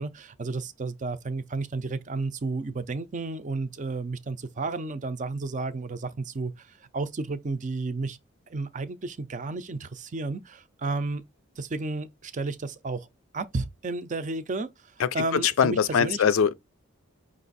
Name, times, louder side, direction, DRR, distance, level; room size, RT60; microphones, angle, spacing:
voice 1, 0.0-8.2 8.5-11.2 11.6-13.1 13.3-16.2, right 3 dB, 35° right, 0.5 m, -32 dB
voice 2, 15.0-16.5, left 7 dB, 70° left, 0.4 m, -23 dB
5.3 x 2.5 x 4.0 m
head